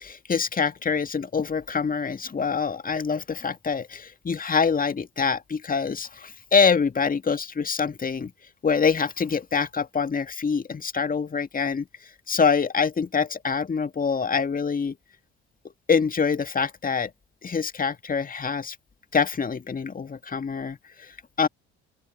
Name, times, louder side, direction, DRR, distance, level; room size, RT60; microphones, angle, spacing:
voice 1, 0.0-8.3 8.6-11.9 12.3-15.0 15.9-17.1 17.4-18.8 19.1-21.5, left 5 dB, 25° left, 2.2 m, -25 dB
open air
figure-of-eight pair, 50°, 33 cm